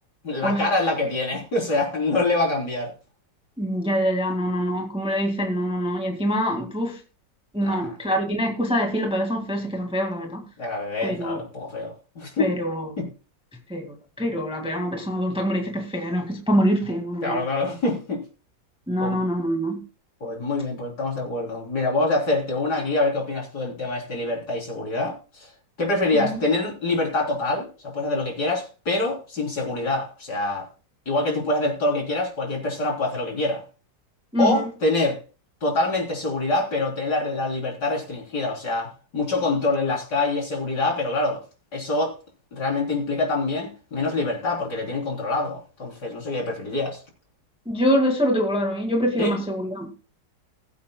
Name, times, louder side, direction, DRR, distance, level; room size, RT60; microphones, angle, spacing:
voice 1, 0.2-2.9 7.6-7.9 10.6-12.5 13.0-13.1 17.2-18.2 19.0-19.2 20.2-25.5 25.8-30.7 31.1-33.6 34.4-35.2 35.6-41.4 41.7-42.1 42.5-47.0 49.2-49.4, left 2 dB, 60° left, 4.2 m, -25 dB
voice 2, 3.6-7.0 7.5-10.4 11.0-11.4 12.4-12.9 13.7-17.4 18.9-19.8 26.1-26.4 34.3-34.7 47.7-49.9, equal, 5° right, 1.7 m, -25 dB
21.0 x 8.4 x 2.2 m
omnidirectional pair, 2.0 m